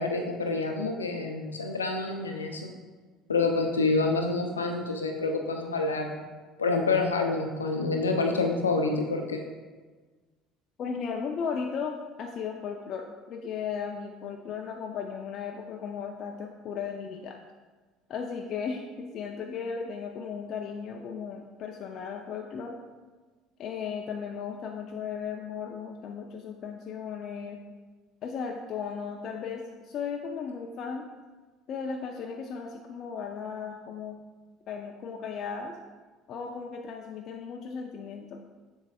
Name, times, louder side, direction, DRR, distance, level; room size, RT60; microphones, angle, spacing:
voice 1, 0.0-2.7 3.3-6.2 6.6-9.4, left 3 dB, 90° left, 3 dB, 0.7 m, -27 dB
voice 2, 10.8-17.4 18.1-22.8 23.6-27.6 28.2-31.1 31.7-34.2 34.7-35.7 36.3-38.4, left 6 dB, 50° left, 2 dB, 0.6 m, -36 dB
7.2 x 6.3 x 2.4 m, 1.4 s
hypercardioid pair, 65°, 0 cm